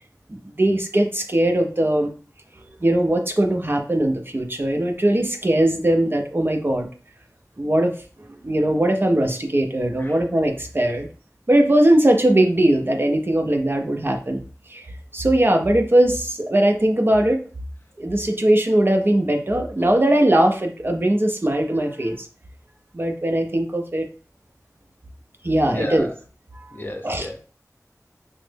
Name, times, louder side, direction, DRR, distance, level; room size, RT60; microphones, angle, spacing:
voice 1, 0.3-2.1 2.8-6.9 7.6-7.9 8.4-11.1 11.5-14.4 14.7-14.9 15.1-17.4 18.0-22.3 22.9-24.1 25.4-26.1 26.5-26.7 27.0-27.3, right 1 dB, 35° right, 4 dB, 0.5 m, -20 dB
voice 2, 25.6-26.1 26.7-27.4, left 1 dB, 35° left, 2 dB, 0.7 m, -32 dB
3.1 x 2.0 x 3.3 m, 0.39 s
wide cardioid pair, 50°, 6 cm